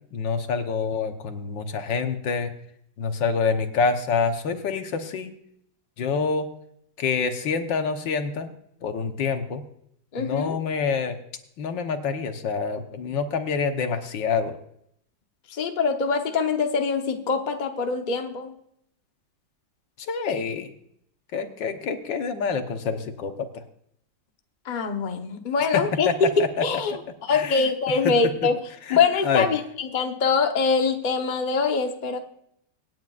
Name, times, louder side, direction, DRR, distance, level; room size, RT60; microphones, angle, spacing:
voice 1, 0.1-2.5 3.0-5.3 6.0-6.5 7.0-8.5 8.8-9.6 10.2-11.2 11.6-14.6 20.1-20.7 21.3-23.6 25.7-26.1 27.3-27.7 28.0-28.1 28.9-29.0 29.2-29.5, left 5 dB, 80° left, 7 dB, 1.8 m, -26 dB
voice 2, 10.1-10.6 15.5-18.5 24.6-26.1 26.4-26.9 27.2-28.6 28.9-32.2, left 5 dB, 35° left, 4 dB, 0.9 m, -24 dB
25.0 x 9.3 x 2.4 m, 0.72 s
omnidirectional pair, 2.0 m